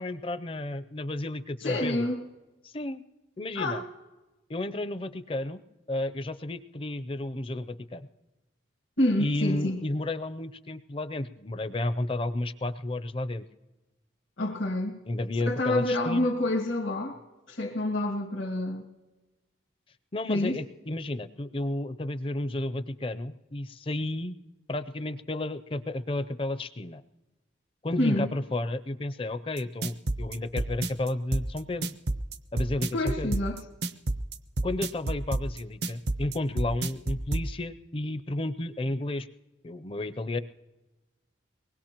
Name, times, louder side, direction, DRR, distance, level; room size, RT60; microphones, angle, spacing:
voice 1, 0.0-2.1 2.6-3.0 3.4-3.8 4.5-5.6 5.9-8.1 9.2-13.5 15.1-16.3 20.1-24.4 24.7-27.0 27.8-31.9 32.5-33.3 34.6-39.3 39.6-40.4, left 2 dB, 30° left, 12 dB, 0.5 m, -32 dB
voice 2, 1.6-2.2 3.5-3.9 9.0-9.8 14.4-15.0 15.4-17.2 17.5-18.8 20.3-20.6 28.0-28.3 32.9-33.6, left 1 dB, 90° left, -3 dB, 1.8 m, -28 dB
sound 1, 29.6-37.5, right 2 dB, 60° right, 0.6 m, -29 dB
24.0 x 20.0 x 2.9 m, 1.1 s
head